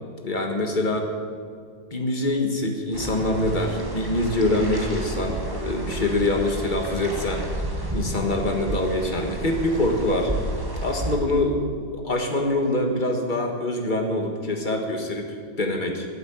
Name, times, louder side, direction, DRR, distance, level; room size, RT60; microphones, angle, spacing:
voice 1, 0.2-1.1 1.9-7.4 7.9-10.3 10.8-11.6 11.9-16.1, left 1 dB, 30° left, 3 dB, 1.6 m, -24 dB
sound 1, 2.9-11.2, right 1 dB, 15° right, 1.8 m, -31 dB
13.0 x 8.7 x 9.0 m, 2.1 s
omnidirectional pair, 1.8 m